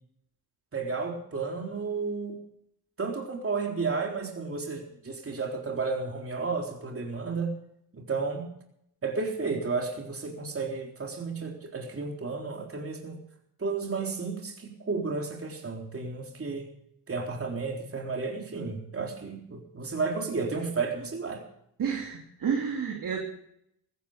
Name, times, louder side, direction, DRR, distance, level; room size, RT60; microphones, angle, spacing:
voice 1, 0.7-2.4 3.0-7.6 7.9-8.5 9.0-13.2 13.6-16.7 17.1-21.4, right 4 dB, 35° right, 1 dB, 3.9 m, -32 dB
voice 2, 21.8-23.2, right 7 dB, 65° right, 0 dB, 2.9 m, -30 dB
15.5 x 15.5 x 5.1 m, 0.74 s
cardioid pair, 65°, 37 cm